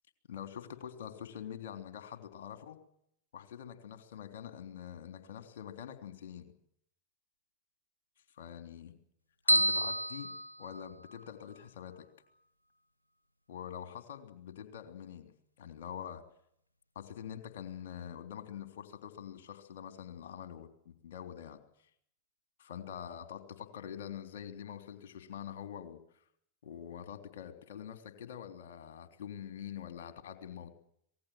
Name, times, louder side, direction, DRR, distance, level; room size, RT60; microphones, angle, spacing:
voice 1, 0.3-2.8 3.3-6.5 8.4-8.9 9.4-10.3 10.6-12.1 13.5-16.2 17.0-21.6 22.6-26.0 26.6-30.7, left 9 dB, 55° left, 7 dB, 3.3 m, -45 dB
sound 1, 9.5-11.2, equal, 80° left, 1.2 m, -30 dB
26.5 x 19.0 x 7.6 m, 0.71 s
figure-of-eight pair, 90°, 0 cm